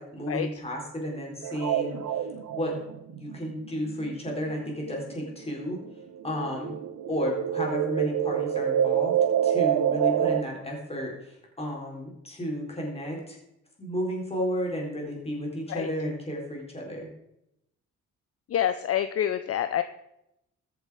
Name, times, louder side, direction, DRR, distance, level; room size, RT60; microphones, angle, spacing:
voice 1, 0.0-2.3 2.5-2.8 3.1-5.8 6.2-6.8 7.1-9.1 9.4-13.4 13.8-17.1, equal, 20° left, -1 dB, 4.3 m, -32 dB
sound 1, 1.4-5.5 5.8-10.4, right 10 dB, 85° right, 1.1 m, -27 dB
voice 2, 18.5-19.8, left 10 dB, 50° left, 11 dB, 0.6 m, -27 dB
14.0 x 7.0 x 5.0 m, 0.84 s
cardioid pair, 90°, 30 cm